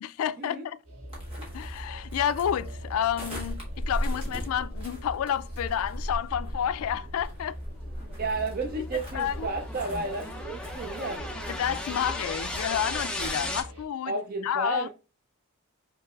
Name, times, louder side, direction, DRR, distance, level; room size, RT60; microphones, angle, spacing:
voice 1, 0.0-0.8 1.5-7.6 8.9-9.5 11.5-14.1 14.4-14.9, left 9 dB, 75° left, 0.3 m, -30 dB
sound 1, 0.8-13.8, equal, 70° right, 1.9 m, -44 dB
sound 2, 1.1-13.6, equal, 25° right, 1.4 m, -38 dB
sound 3, 6.6-13.6, left 1 dB, 5° left, 0.5 m, -37 dB
voice 2, 8.2-11.3 14.1-14.9, right 3 dB, 40° right, 0.5 m, -32 dB
5.8 x 3.2 x 2.3 m
head